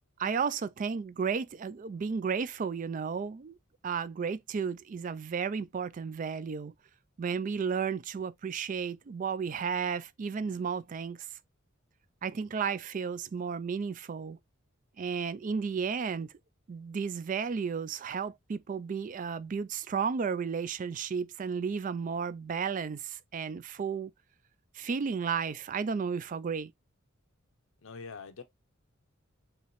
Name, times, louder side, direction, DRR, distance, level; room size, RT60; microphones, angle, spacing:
voice 1, 0.2-3.6 3.8-6.7 7.2-11.3 12.2-14.4 15.0-16.3 16.7-24.1 24.7-26.7, right 6 dB, 40° right, 0.3 m, -33 dB
voice 2, 27.8-28.4, left 5 dB, 70° left, 0.7 m, -43 dB
5.5 x 3.0 x 2.9 m
head